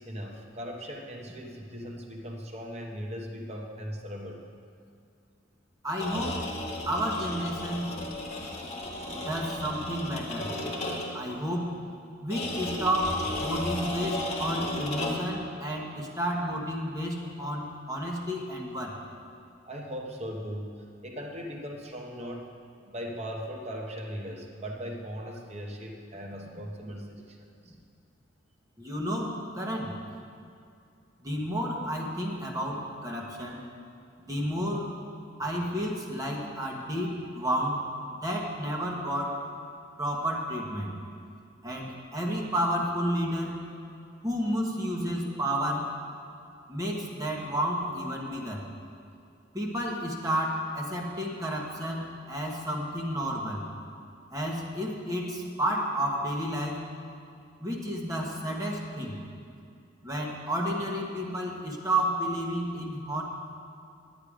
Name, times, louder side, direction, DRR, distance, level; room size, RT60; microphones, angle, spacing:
voice 1, 0.0-4.4 19.7-20.7 21.0-22.5 22.8-27.4 27.6-27.7 41.7-41.9, equal, 35° right, 1 dB, 0.9 m, -38 dB
voice 2, 5.8-6.5 6.9-7.9 9.1-10.5 11.1-11.7 12.2-19.0 27.6-27.7 28.8-30.0 31.2-33.6 34.2-34.9 35.4-37.8 38.1-39.4 40.0-40.9 41.6-43.6 44.2-45.9 46.7-48.6 49.5-53.6 54.3-56.9 57.6-59.2 60.0-63.2, equal, 20° right, -1 dB, 1.3 m, -31 dB
sound 1, 5.9-11.3 12.3-15.4, left 1 dB, 35° left, 1.6 m, -34 dB
10.5 x 8.7 x 5.0 m, 2.4 s
head